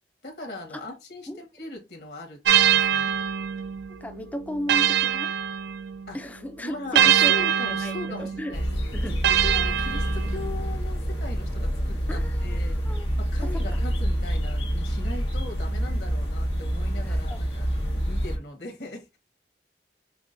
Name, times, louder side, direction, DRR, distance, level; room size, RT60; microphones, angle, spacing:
voice 1, 0.2-2.4 2.7-3.1 6.1-6.2 6.6-8.7 9.4-12.8 13.2-17.7 18.0-19.2, left 2 dB, 70° left, 1.5 m, -39 dB
sound 1, 2.4-6.2 6.9-10.6, right 9 dB, 80° right, 0.4 m, -24 dB
voice 2, 4.0-5.3 6.1-7.3 7.7-8.6 8.9-9.2 12.1-13.1 13.4-13.8 17.0-17.4, equal, 10° left, 0.4 m, -35 dB
sound 2, 8.5-18.4, equal, 85° left, 1.6 m, -27 dB
5.8 x 2.1 x 2.6 m
head